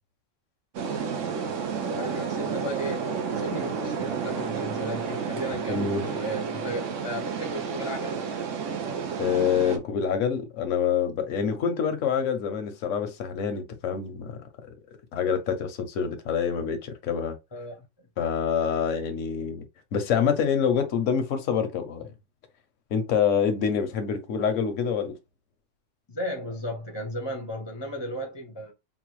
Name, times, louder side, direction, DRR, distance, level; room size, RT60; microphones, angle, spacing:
sound 1, 0.7-9.8, right 6 dB, 85° right, 1.1 m, -31 dB
voice 1, 1.9-3.1 3.4-8.2 17.5-18.1 26.1-28.7, equal, 30° left, 0.6 m, -35 dB
voice 2, 5.7-6.1 9.2-14.7 15.1-17.4 18.2-19.7 19.9-22.1 22.9-25.2, left 7 dB, 80° left, 1.1 m, -26 dB
4.0 x 2.2 x 3.0 m
omnidirectional pair, 1.3 m